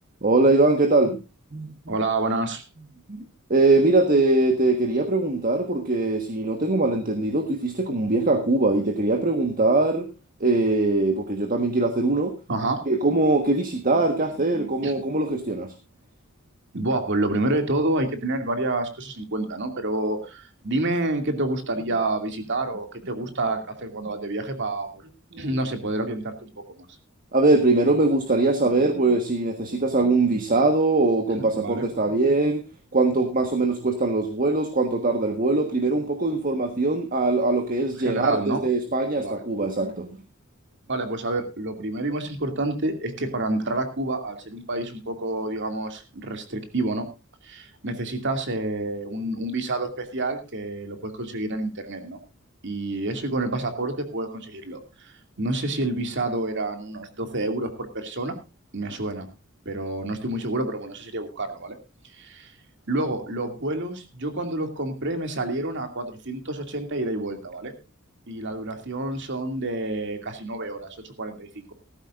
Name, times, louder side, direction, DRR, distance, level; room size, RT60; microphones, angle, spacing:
voice 1, 0.2-1.2 1.5-2.0 3.1-3.2 3.5-10.1 10.4-12.3 12.9-15.7 25.3-25.5 27.3-32.6 32.9-40.2, right 2 dB, 40° right, 6 dB, 1.5 m, -22 dB
voice 2, 1.9-2.6 12.5-12.9 14.8-14.9 16.7-25.0 25.4-26.9 31.5-31.8 38.0-38.6 39.2-39.4 40.9-47.1 47.4-52.2 52.6-58.4 58.7-59.3 59.7-61.8 62.0-62.5 62.9-67.7 68.3-71.7, right 2 dB, 55° right, 6 dB, 2.5 m, -28 dB
17.0 x 14.5 x 2.5 m, 0.28 s
head